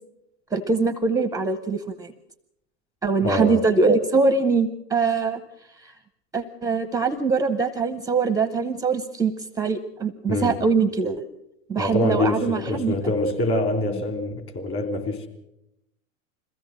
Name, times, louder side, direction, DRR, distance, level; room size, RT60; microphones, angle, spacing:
voice 1, 0.5-2.1 3.0-5.4 5.8-5.9 6.3-9.3 9.6-11.3 11.7-13.0, right 4 dB, 10° right, 11 dB, 0.7 m, -23 dB
voice 2, 3.2-3.6 10.3-10.6 11.8-15.3, left 2 dB, 30° left, 7 dB, 3.5 m, -25 dB
22.0 x 16.0 x 7.5 m, 0.84 s
hypercardioid pair, 120°, 39 cm